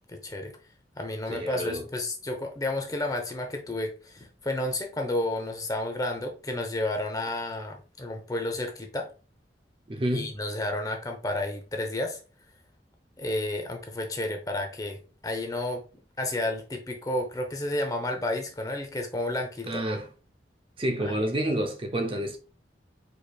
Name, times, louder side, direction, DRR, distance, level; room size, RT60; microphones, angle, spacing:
voice 1, 0.1-0.5 1.0-9.1 10.1-12.2 13.2-15.8 16.2-19.8 21.0-21.2, left 1 dB, 20° left, 0.8 m, -31 dB
voice 2, 1.3-1.8 9.9-10.3 19.7-20.1 20.8-22.4, right 1 dB, 30° right, 0.5 m, -29 dB
5.0 x 4.1 x 2.3 m
head